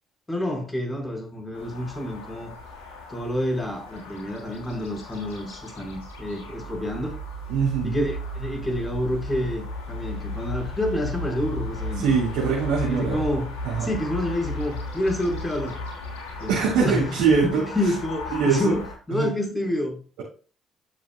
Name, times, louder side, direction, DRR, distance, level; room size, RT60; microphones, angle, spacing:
voice 1, 0.3-2.5 3.1-7.2 7.8-12.0 12.9-13.5 13.8-15.8 16.4-17.2 17.4-20.2, left 1 dB, 20° left, 4.3 m, -28 dB
sound 1, 1.5-18.9, left 1 dB, 85° left, 2.8 m, -35 dB
voice 2, 7.5-7.9 12.0-13.2 13.6-13.9 16.5-17.9 18.3-18.8 19.1-19.3, right 5 dB, 75° right, 4.4 m, -23 dB
12.5 x 7.5 x 2.2 m
hypercardioid pair, 50°, 0 cm